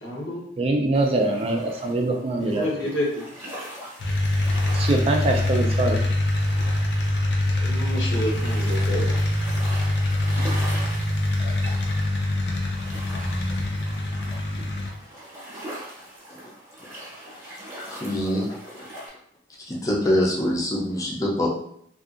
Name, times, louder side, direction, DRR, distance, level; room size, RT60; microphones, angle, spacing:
voice 1, 0.0-0.4 2.4-3.3 7.6-9.3, equal, 80° left, -3 dB, 0.9 m, -29 dB
voice 2, 0.6-2.7 4.7-6.0 11.4-11.7, right 2 dB, 30° right, 3 dB, 0.3 m, -24 dB
sound 1, 0.9-19.1, right 1 dB, 15° right, 0.8 m, -41 dB
sound 2, 4.0-14.9, left 1 dB, 65° left, 0.5 m, -24 dB
voice 3, 17.8-18.6 19.7-21.5, left 1 dB, 20° left, -4 dB, 0.5 m, -24 dB
2.6 x 2.4 x 2.4 m, 0.68 s
head